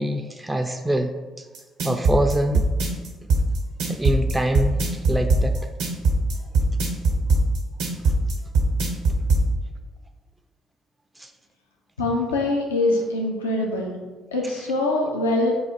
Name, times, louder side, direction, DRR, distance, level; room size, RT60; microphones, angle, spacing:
voice 1, 0.0-1.4 1.8-2.7 3.9-4.8 5.1-5.7 11.2-11.3 14.4-14.5, right 1 dB, 10° right, 4 dB, 0.3 m, -25 dB
sound 1, 1.5-9.4, right 2 dB, 70° right, 0.8 m, -20 dB
voice 2, 12.0-14.0 14.3-15.5, left 2 dB, 90° left, -1 dB, 0.5 m, -23 dB
4.0 x 2.4 x 4.3 m, 1.3 s
hypercardioid pair, 50°, 0 cm